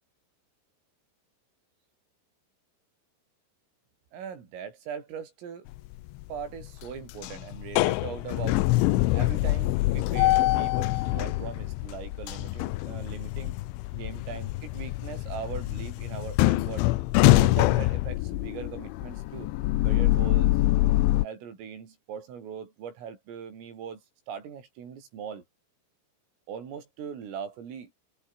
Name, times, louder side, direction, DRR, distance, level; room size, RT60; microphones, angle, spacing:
voice 1, 4.1-5.7 6.3-8.6 9.1-13.6 13.9-16.9 17.3-19.5 19.8-20.5 21.2-24.0 24.3-25.4 26.5-27.9, right 7 dB, 85° right, 7.4 m, -40 dB
sound 1, 5.7-6.2 6.6-21.3, left 18 dB, 80° left, 3.2 m, -25 dB
omnidirectional pair, 5.7 m